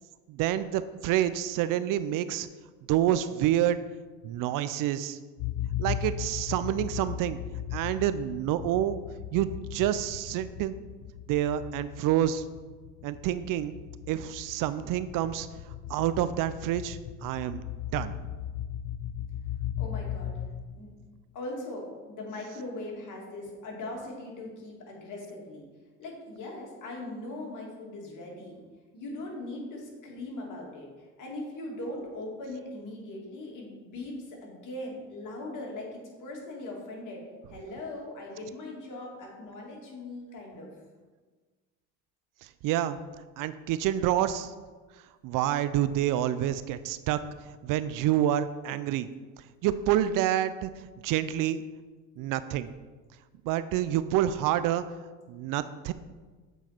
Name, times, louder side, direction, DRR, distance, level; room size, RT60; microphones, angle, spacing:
voice 1, 0.3-2.5 2.9-3.8 4.2-5.2 5.8-7.4 7.7-9.0 9.3-10.7 11.3-12.4 13.0-13.8 14.1-15.5 15.9-17.6 17.9-18.2 42.4-43.0 43.4-44.5 45.2-47.2 47.6-49.1 49.6-50.7 51.0-51.6 52.2-52.7 53.4-54.8 55.3-55.9, right 12 dB, 60° right, 13 dB, 0.5 m, -28 dB
sound 1, 5.4-21.0, left 10 dB, 75° left, 0.5 m, -37 dB
voice 2, 19.8-20.4 20.7-20.9 21.3-25.6 26.0-28.6 28.9-37.2 37.5-40.7, left 2 dB, 55° left, -2 dB, 2.4 m, -40 dB
7.9 x 4.6 x 4.3 m, 1.4 s
supercardioid pair, 85°, 37 cm